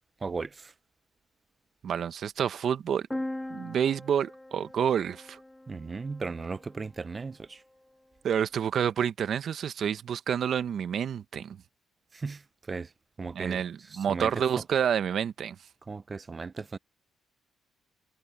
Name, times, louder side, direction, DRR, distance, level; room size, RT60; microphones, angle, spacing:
voice 1, 0.2-0.7 5.7-7.6 12.1-12.9 13.2-14.4 15.9-16.8, right 4 dB, 30° right, 0.6 m, -36 dB
voice 2, 1.8-3.1 3.5-5.4 8.2-11.6 13.3-15.6, right 8 dB, 60° right, 0.9 m, -28 dB
sound 1, 3.1-6.8, left 1 dB, 10° left, 0.5 m, -40 dB
cardioid pair, 80°, 0 cm